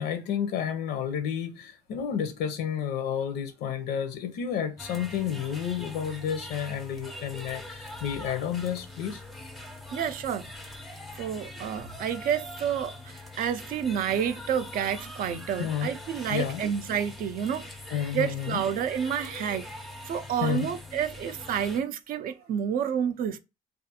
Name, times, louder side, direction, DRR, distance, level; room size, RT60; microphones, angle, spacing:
voice 1, 0.0-9.2 15.6-15.9 16.3-16.6 17.9-18.6 20.4-20.7, left 8 dB, 80° left, 0.5 m, -31 dB
sound 1, 4.8-21.8, left 1 dB, ahead, 0.4 m, -43 dB
voice 2, 9.9-10.5 11.2-17.6 18.1-19.7 20.1-23.4, right 8 dB, 60° right, 0.4 m, -29 dB
2.4 x 2.4 x 2.7 m
cardioid pair, 110°, 17 cm